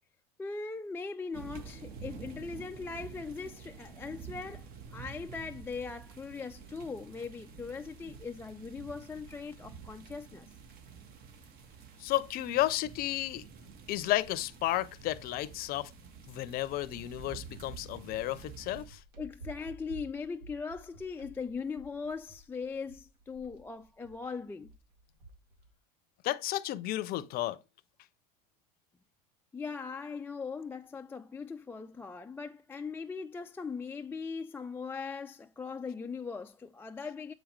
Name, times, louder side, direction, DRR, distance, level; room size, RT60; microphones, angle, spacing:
voice 1, 0.4-4.6 4.9-10.5 19.2-24.7 29.5-37.3, left 5 dB, 10° left, 0.3 m, -40 dB
sound 1, 1.3-18.9, right 6 dB, 50° right, 1.5 m, -49 dB
voice 2, 12.0-13.4 13.9-15.9 16.3-19.0 26.2-27.6, left 15 dB, 50° left, 0.6 m, -32 dB
sound 2, 18.9-25.7, right 2 dB, 90° right, 1.9 m, -52 dB
7.8 x 5.0 x 3.2 m
supercardioid pair, 105°, 20 cm